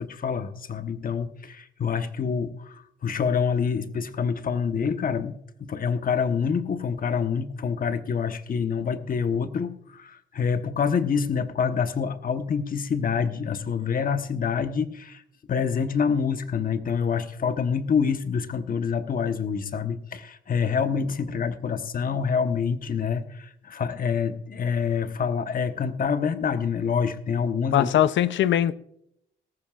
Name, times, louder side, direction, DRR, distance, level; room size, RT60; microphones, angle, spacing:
voice 1, 0.0-15.2 15.5-28.0, left 6 dB, 45° left, 1.1 m, -26 dB
voice 2, 27.7-28.7, left 11 dB, 70° left, 0.6 m, -21 dB
18.5 x 14.5 x 2.5 m
cardioid pair, 90°, 20 cm